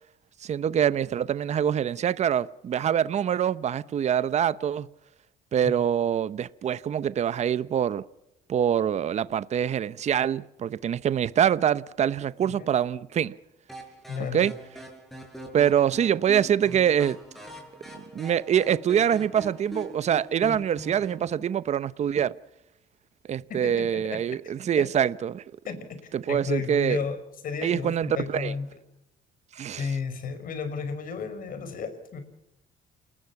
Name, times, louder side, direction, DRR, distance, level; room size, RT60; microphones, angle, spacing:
voice 1, 0.4-4.9 5.5-8.0 8.5-13.4 14.3-14.5 15.5-17.2 18.1-22.3 23.3-25.4 26.1-27.0 27.6-28.5 29.5-29.9, right 9 dB, 40° right, 0.8 m, -25 dB
sound 1, 13.7-21.3, equal, ahead, 6.5 m, -43 dB
voice 2, 14.1-14.5 23.5-24.2 24.8-24.9 25.6-25.8 26.3-27.2 27.4-28.7 29.8-32.2, left 5 dB, 55° left, 5.5 m, -32 dB
29.0 x 20.0 x 5.9 m
cardioid pair, 110°, 17 cm